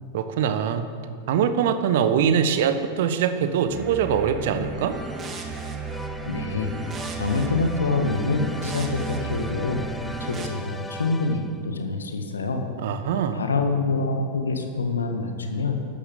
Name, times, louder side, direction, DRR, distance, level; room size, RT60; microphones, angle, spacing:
voice 1, 0.1-0.9 1.3-5.0 12.8-13.4, right 8 dB, 55° right, 10 dB, 1.2 m, -23 dB
sound 1, 3.6-10.5, right 5 dB, 25° right, 2.0 m, -34 dB
sound 2, 4.9-11.7, left 2 dB, 10° left, 0.6 m, -39 dB
voice 2, 6.3-6.8 7.1-9.8 10.2-12.7 13.3-15.8, left 3 dB, 75° left, 5 dB, 1.7 m, -26 dB
13.0 x 12.5 x 7.5 m, 2.4 s
figure-of-eight pair, 90°, 0 cm